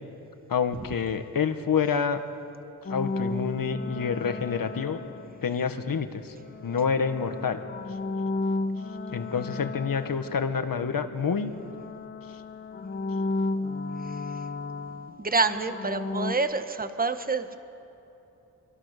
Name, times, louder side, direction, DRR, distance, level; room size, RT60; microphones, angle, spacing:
voice 1, 0.5-2.2 2.9-5.0 5.4-6.3 6.6-7.6 9.1-11.5, left 6 dB, 65° left, 9 dB, 1.5 m, -27 dB
sound 1, 2.8-5.7 6.4-11.2 11.5-16.3, left 3 dB, 30° left, 1.0 m, -34 dB
voice 2, 15.2-17.6, right 3 dB, 25° right, 9 dB, 1.2 m, -27 dB
26.0 x 24.5 x 6.7 m, 2.9 s
wide cardioid pair, 115°, 37 cm